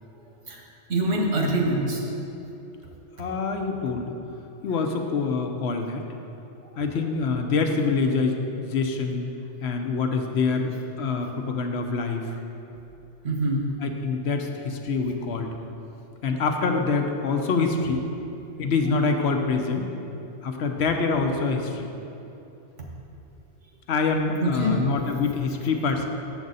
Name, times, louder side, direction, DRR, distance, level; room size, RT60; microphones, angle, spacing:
voice 1, 0.1-0.6 0.9-2.0 13.2-13.6 24.4-24.8, right 1 dB, 90° right, -1 dB, 1.5 m, -25 dB
voice 2, 3.2-4.1 4.6-6.0 6.8-9.3 9.6-10.7 11.0-12.4 13.8-15.5 16.2-18.1 18.6-19.9 20.4-21.9 23.9-26.1, left 4 dB, 70° left, 4 dB, 0.9 m, -25 dB
7.4 x 7.0 x 4.0 m, 2.9 s
omnidirectional pair, 1.2 m